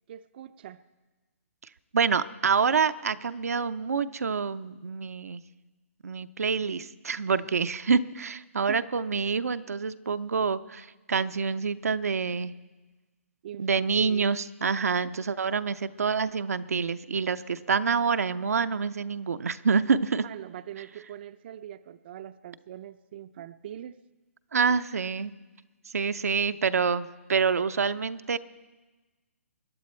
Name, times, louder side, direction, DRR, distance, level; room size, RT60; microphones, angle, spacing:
voice 1, 0.1-0.8 8.6-8.8 13.4-14.3 15.0-15.1 20.2-24.0, right 11 dB, 45° right, 13 dB, 0.4 m, -42 dB
voice 2, 1.9-5.4 6.0-12.5 13.6-20.2 24.5-25.3 25.9-28.4, right 5 dB, 85° right, 11 dB, 0.6 m, -27 dB
22.5 x 10.5 x 4.4 m, 1.2 s
hypercardioid pair, 150°, 8 cm